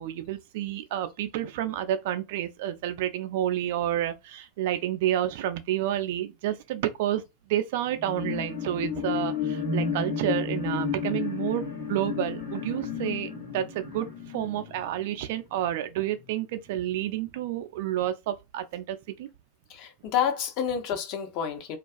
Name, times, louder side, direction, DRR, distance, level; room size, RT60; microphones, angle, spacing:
voice 1, 0.0-7.2 7.5-14.1 14.3-19.3, right 12 dB, 55° right, 0.3 m, -30 dB
sound 1, 8.0-15.7 16.2-16.3, left 6 dB, 80° left, 1.0 m, -32 dB
voice 2, 19.7-21.8, left 8 dB, 45° left, 0.6 m, -29 dB
2.3 x 2.2 x 2.5 m
figure-of-eight pair, 85°, 0 cm